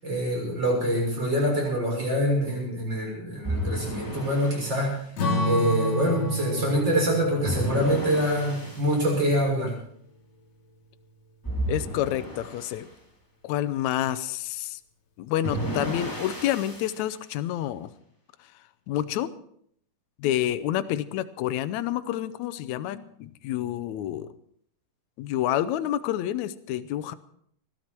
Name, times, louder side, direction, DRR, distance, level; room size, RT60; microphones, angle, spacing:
voice 1, 0.0-5.0 5.4-9.7, equal, 30° right, -1 dB, 7.1 m, -25 dB
sound 1, 3.4-4.9 7.4-8.9 11.4-12.8 15.4-17.0, equal, 5° left, 2.9 m, -32 dB
Strum, 5.2-9.8, left 1 dB, 50° left, 3.6 m, -31 dB
voice 2, 11.7-12.9 13.4-14.8 15.2-17.9 18.9-19.3 20.2-24.3 25.2-27.1, left 12 dB, 80° left, 12 dB, 1.7 m, -28 dB
21.0 x 13.5 x 4.5 m, 0.65 s
omnidirectional pair, 4.2 m